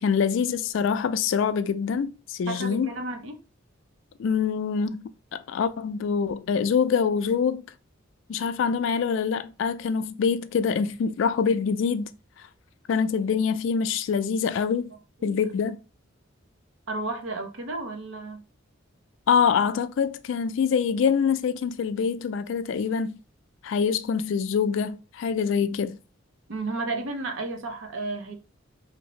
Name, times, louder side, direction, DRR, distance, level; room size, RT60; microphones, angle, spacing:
voice 1, 0.0-2.9 4.2-7.6 8.3-12.1 12.9-14.9 15.2-15.8 19.3-23.2 23.6-26.0, left 6 dB, 65° left, 0.3 m, -25 dB
voice 2, 2.5-3.4 15.2-15.4 16.9-18.4 26.5-28.4, right 2 dB, 75° right, 0.7 m, -32 dB
2.8 x 2.6 x 3.0 m
head